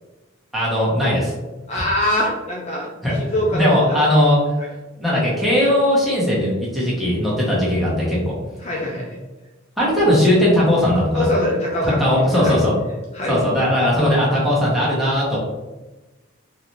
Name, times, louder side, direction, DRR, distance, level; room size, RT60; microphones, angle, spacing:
voice 1, 0.5-1.3 1.7-1.8 3.0-3.1 3.5-4.4 5.0-8.3 9.8-11.3 11.8-12.7 13.3-15.4, left 1 dB, ahead, -7 dB, 1.2 m, -18 dB
voice 2, 1.7-2.9 3.2-4.0 8.6-9.2 11.1-12.6 13.1-13.4, left 1 dB, 35° left, -3 dB, 0.6 m, -23 dB
3.9 x 2.8 x 3.1 m, 1.1 s
head